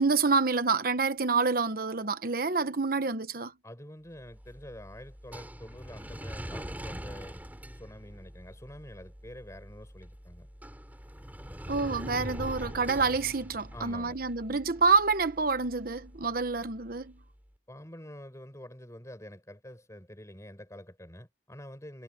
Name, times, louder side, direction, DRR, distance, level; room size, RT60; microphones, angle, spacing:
voice 1, 0.0-3.5 11.7-17.2, right 4 dB, 55° right, 1.1 m, -27 dB
voice 2, 3.6-10.5 13.7-14.2 17.7-22.0, left 1 dB, 15° left, 6.5 m, -47 dB
sound 1, 4.2-17.3, equal, 10° right, 7.3 m, -44 dB
head